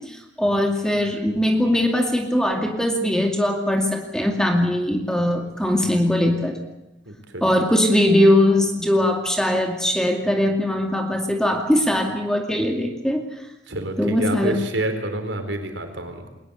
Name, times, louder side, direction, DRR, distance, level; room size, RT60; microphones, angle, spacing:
voice 1, 0.0-6.6 7.4-13.2 14.0-14.5, left 1 dB, 5° left, 3 dB, 2.4 m, -20 dB
voice 2, 7.1-7.4 13.7-16.3, right 1 dB, 75° right, 6 dB, 4.3 m, -28 dB
21.5 x 20.5 x 8.2 m, 0.96 s
head